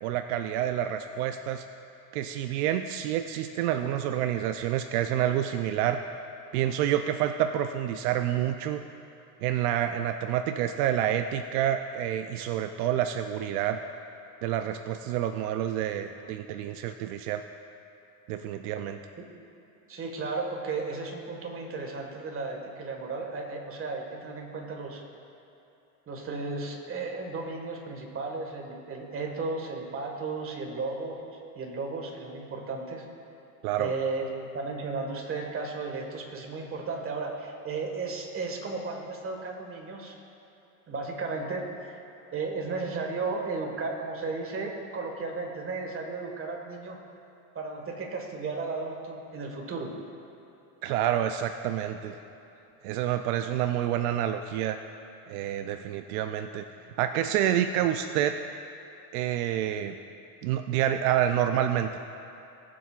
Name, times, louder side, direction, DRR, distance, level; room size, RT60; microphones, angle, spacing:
voice 1, 0.0-1.6 2.1-6.0 6.5-8.8 9.4-13.8 14.4-17.4 18.3-19.0 33.6-33.9 50.8-52.2 52.8-54.8 55.3-56.6 57.0-58.4 59.1-60.0 60.4-61.9, right 11 dB, 75° right, 7 dB, 0.6 m, -28 dB
voice 2, 19.9-25.0 26.1-31.2 31.5-33.0 33.8-40.2 40.9-42.0 42.3-47.0 47.5-49.9, right 3 dB, 30° right, 1 dB, 1.7 m, -34 dB
20.0 x 7.6 x 2.5 m, 2.8 s
supercardioid pair, 115°, 44 cm